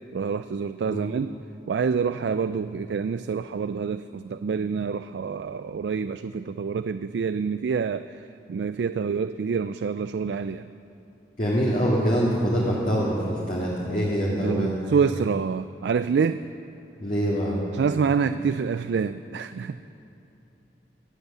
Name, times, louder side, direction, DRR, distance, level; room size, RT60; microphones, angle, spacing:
voice 1, 0.1-1.3 1.7-8.2 8.5-10.7 14.3-16.4 17.7-19.8, right 6 dB, 75° right, 11 dB, 0.3 m, -27 dB
voice 2, 11.4-14.8 17.0-17.6, equal, 45° left, -5 dB, 2.0 m, -24 dB
23.5 x 8.2 x 6.9 m, 2.9 s
head